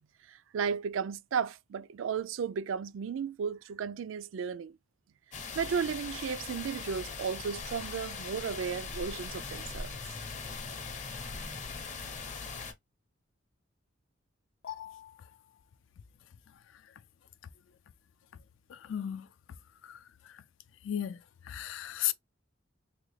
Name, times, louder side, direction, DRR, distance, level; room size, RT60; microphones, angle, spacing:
voice 1, 0.3-4.7 5.5-10.0, right 6 dB, 75° right, 0.3 m, -34 dB
sound 1, 5.3-12.7, left 4 dB, 35° left, 0.7 m, -40 dB
voice 2, 14.6-15.1 18.7-19.3 19.8-20.0 20.8-21.2 21.4-22.1, left 11 dB, 70° left, 0.3 m, -35 dB
3.4 x 2.2 x 3.2 m
head